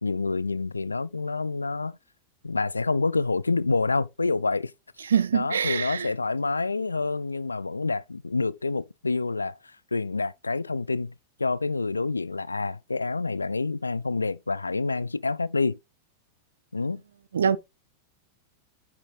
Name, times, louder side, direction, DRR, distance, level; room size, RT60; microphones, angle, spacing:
voice 1, 0.0-2.0 2.4-4.7 5.3-9.6 9.9-11.1 11.4-15.8 16.7-17.0, left 3 dB, 80° left, 0.3 m, -27 dB
voice 2, 5.1-6.1 17.3-17.6, right 7 dB, 70° right, 0.5 m, -24 dB
9.1 x 4.9 x 3.5 m
figure-of-eight pair, 90°, 0 cm